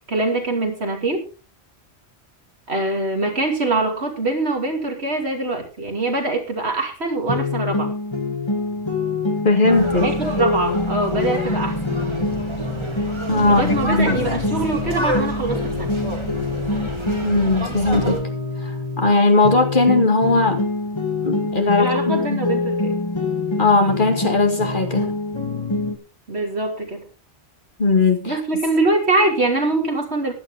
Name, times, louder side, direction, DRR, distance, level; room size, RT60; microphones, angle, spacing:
voice 1, 0.1-1.2 2.7-7.9 10.0-11.8 13.4-15.9 21.8-22.9 26.3-27.0 28.3-30.3, right 2 dB, 75° right, 2 dB, 3.1 m, -23 dB
sound 1, 7.3-19.1 19.4-26.0, left 3 dB, 25° left, 2.3 m, -25 dB
voice 2, 9.4-10.1 13.3-14.2 17.2-18.3 18.6-20.7 21.2-22.4 23.6-25.1 27.8-28.4, left 3 dB, 50° left, 5 dB, 2.2 m, -19 dB
sound 2, 9.7-18.2, right 1 dB, 25° right, 2.4 m, -29 dB
15.0 x 11.0 x 3.5 m, 0.32 s
omnidirectional pair, 1.1 m